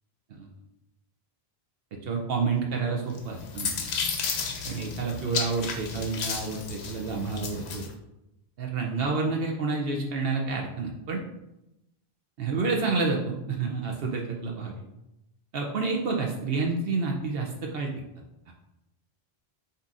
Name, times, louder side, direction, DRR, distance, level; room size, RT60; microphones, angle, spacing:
voice 1, 2.0-3.7 4.7-7.8 8.6-11.2 12.4-14.8 15.5-17.9, right 4 dB, 70° right, 1 dB, 0.8 m, -29 dB
sound 1, 3.1-7.9, left 5 dB, 80° left, 0.9 m, -33 dB
7.4 x 2.8 x 2.4 m, 0.90 s
omnidirectional pair, 1.1 m